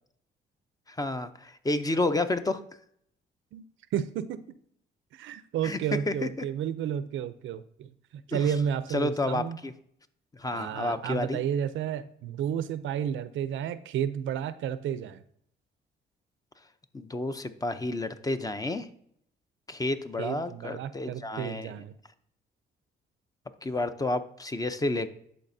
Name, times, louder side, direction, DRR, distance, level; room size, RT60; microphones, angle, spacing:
voice 1, 1.0-2.6 5.6-5.8 6.1-6.3 8.3-8.5 8.9-9.7 10.4-11.4 16.9-18.9 19.7-21.7 23.6-25.1, left 2 dB, 20° left, 10 dB, 0.6 m, -30 dB
voice 2, 3.9-4.4 5.1-9.6 10.5-15.2 20.2-21.9, right 9 dB, 75° right, 14 dB, 0.5 m, -32 dB
11.5 x 4.2 x 2.6 m, 0.67 s
cardioid pair, 90°, 20 cm